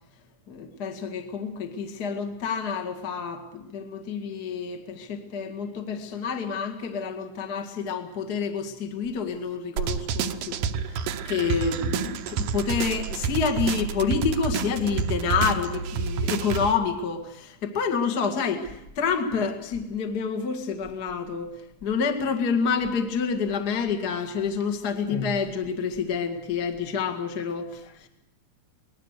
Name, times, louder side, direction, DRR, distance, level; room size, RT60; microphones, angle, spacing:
voice 1, 0.5-10.6 10.9-21.5 21.8-28.1, left 6 dB, 55° left, 5 dB, 1.0 m, -28 dB
sound 1, 9.8-16.7, right 6 dB, 80° right, 1.9 m, -29 dB
24.5 x 20.0 x 6.6 m, 0.83 s
omnidirectional pair, 5.3 m